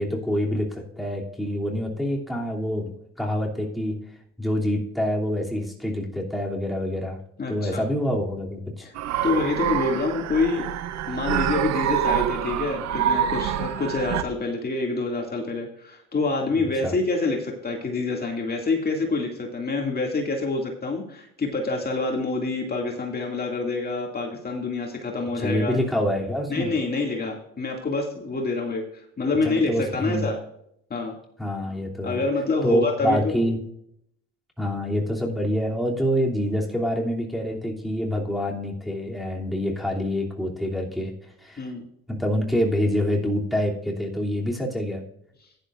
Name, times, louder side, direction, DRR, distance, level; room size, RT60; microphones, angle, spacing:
voice 1, 0.0-2.9 3.2-4.0 4.4-7.2 7.5-8.9 16.5-16.9 25.4-26.7 29.4-30.3 31.4-32.2 32.6-33.6 34.6-41.1 41.4-41.7 42.1-45.0, equal, ahead, -2 dB, 2.9 m, -26 dB
voice 2, 7.4-7.8 8.8-8.9 9.2-10.7 11.1-25.8 26.5-30.4 30.9-31.2 32.0-33.3 41.6-41.9, left 3 dB, 30° left, 1 dB, 2.4 m, -27 dB
sound 1, 9.0-14.2, right 9 dB, 65° right, 0.8 m, -26 dB
15.0 x 10.5 x 2.5 m, 0.72 s
supercardioid pair, 70°, 30 cm